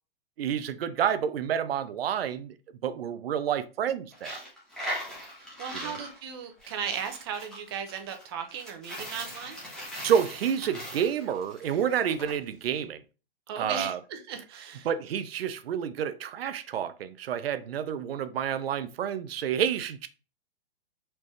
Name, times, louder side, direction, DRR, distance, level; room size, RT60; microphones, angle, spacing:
voice 1, 0.4-2.6 2.8-4.4 5.8-6.0 10.0-13.0 13.6-14.0 14.8-20.1, right 8 dB, 80° right, 0.6 m, -29 dB
Coin (dropping), 4.1-12.3, equal, ahead, 1.0 m, -40 dB
voice 2, 5.6-9.6 13.5-14.9, right 7 dB, 25° right, 0.5 m, -36 dB
4.3 x 3.3 x 3.1 m
hypercardioid pair, 165°, 29 cm